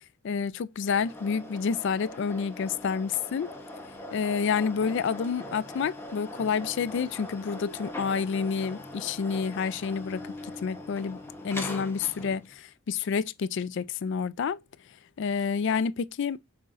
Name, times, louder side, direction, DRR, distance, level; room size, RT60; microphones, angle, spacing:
voice 1, 0.2-3.5 4.1-10.2 10.6-11.2 11.4-14.6 15.2-16.4, left 6 dB, 55° left, 0.3 m, -29 dB
sound 1, 0.8-12.5, left 1 dB, 10° left, 0.9 m, -41 dB
5.8 x 3.7 x 2.5 m
head